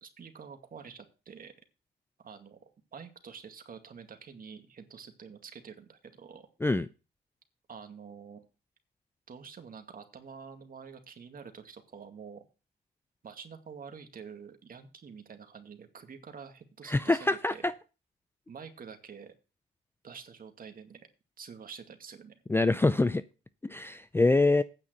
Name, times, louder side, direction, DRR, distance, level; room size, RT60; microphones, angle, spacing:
voice 1, 0.0-1.5 2.2-2.6 2.9-6.5 7.7-8.4 9.3-12.4 13.2-17.7 18.5-19.3 20.0-21.0 21.4-22.3, right 6 dB, 45° right, 6 dB, 2.1 m, -47 dB
voice 2, 16.9-17.7 22.5-23.2 23.6-24.6, left 2 dB, 10° left, 14 dB, 0.5 m, -25 dB
9.1 x 5.7 x 7.9 m, 0.32 s
cardioid pair, 90°, 20 cm